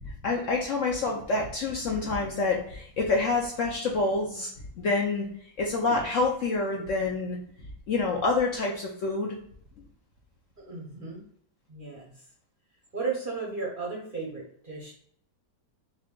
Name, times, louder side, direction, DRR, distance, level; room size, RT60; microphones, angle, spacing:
voice 1, 0.2-4.5 4.8-5.3 5.6-7.4 7.9-9.4, left 3 dB, 75° left, -1 dB, 0.7 m, -27 dB
voice 2, 10.7-11.2 11.7-12.1 12.9-14.9, right 4 dB, 45° right, -3 dB, 0.6 m, -34 dB
3.8 x 3.3 x 3.6 m, 0.64 s
omnidirectional pair, 2.1 m